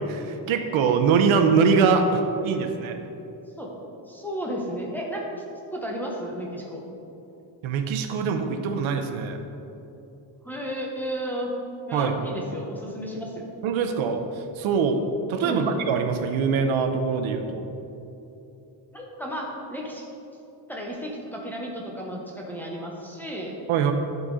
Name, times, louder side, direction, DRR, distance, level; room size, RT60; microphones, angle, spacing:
voice 1, 0.1-3.0 7.6-9.4 11.9-12.2 13.6-17.7 23.7-23.9, right 5 dB, 85° right, 5 dB, 0.8 m, -23 dB
voice 2, 4.0-5.2 5.7-6.9 10.4-11.5 11.9-13.4 15.4-15.8 18.9-20.1 20.7-23.6, equal, 5° left, -3 dB, 0.7 m, -33 dB
12.0 x 4.1 x 3.7 m, 2.9 s
cardioid pair, 175°, 46 cm